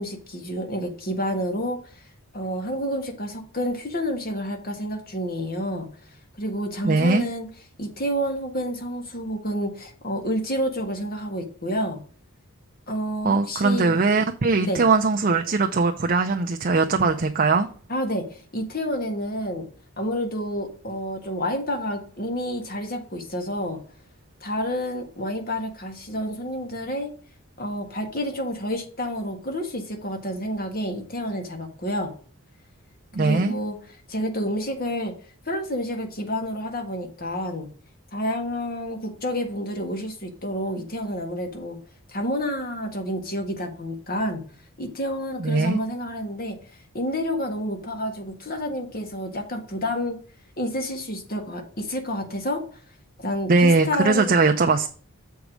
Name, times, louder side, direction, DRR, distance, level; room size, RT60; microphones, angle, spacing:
voice 1, 0.0-1.8 2.3-5.9 6.4-7.5 7.8-12.0 12.9-13.9 14.6-14.8 17.9-19.7 20.0-23.8 24.4-27.1 27.6-32.1 33.2-33.8 34.1-35.1 35.4-37.7 38.1-41.8 42.1-44.4 44.8-46.6 46.9-50.2 50.6-52.6 53.2-54.4, equal, 40° left, 4 dB, 1.6 m, -29 dB
voice 2, 6.8-7.2 13.2-17.7 33.1-33.5 45.4-45.8 53.5-54.9, right 3 dB, 40° right, 4 dB, 0.5 m, -20 dB
7.2 x 4.7 x 5.0 m, 0.43 s
head